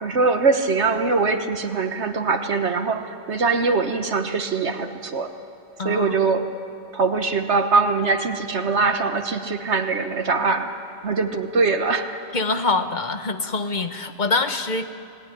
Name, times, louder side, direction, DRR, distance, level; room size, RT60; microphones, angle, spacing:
voice 1, 0.0-5.3 5.8-6.5 6.9-10.7 11.0-12.3, right 4 dB, 65° right, 7 dB, 1.4 m, -22 dB
voice 2, 5.8-6.2 12.3-14.8, left 3 dB, 40° left, 8 dB, 1.2 m, -24 dB
30.0 x 18.5 x 9.9 m, 2.6 s
omnidirectional pair, 1.3 m